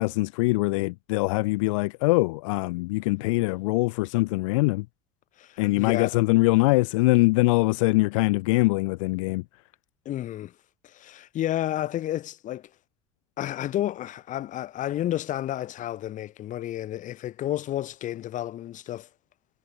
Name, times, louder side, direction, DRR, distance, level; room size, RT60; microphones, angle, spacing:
voice 1, 0.0-4.8 5.6-9.4, left 24 dB, 90° left, 0.5 m, -23 dB
voice 2, 5.4-6.2 10.1-10.5 10.8-12.7 13.4-19.1, left 13 dB, 55° left, 3.7 m, -31 dB
supercardioid pair, 100°, 16 cm